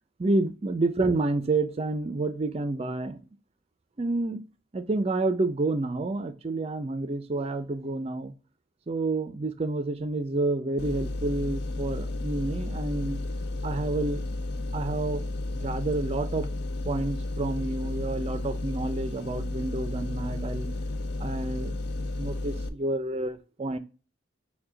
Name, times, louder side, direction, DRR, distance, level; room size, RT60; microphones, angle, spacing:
voice 1, 0.2-3.2 4.0-4.4 4.7-8.3 8.9-13.2 13.6-14.2 14.7-16.5 16.8-20.7 21.2-21.8 22.2-23.8, right 2 dB, 30° right, 0.4 m, -29 dB
sound 1, 10.8-22.7, left 2 dB, 60° left, 0.4 m, -32 dB
4.7 x 2.2 x 3.7 m
head